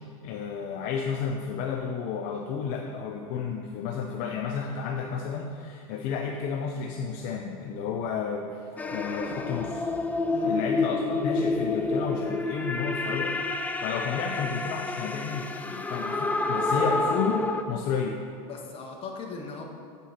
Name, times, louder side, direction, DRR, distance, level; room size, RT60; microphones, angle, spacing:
voice 1, 0.2-9.9 10.4-13.3 13.8-18.2, left 6 dB, 50° left, 2 dB, 0.6 m, -32 dB
sound 1, 8.8-17.6, left 3 dB, 10° left, 0.4 m, -29 dB
voice 2, 10.3-10.6 16.7-16.8 18.4-19.6, left 4 dB, 30° left, 0 dB, 1.3 m, -39 dB
7.8 x 5.4 x 4.4 m, 2.5 s
supercardioid pair, 115°, 18 cm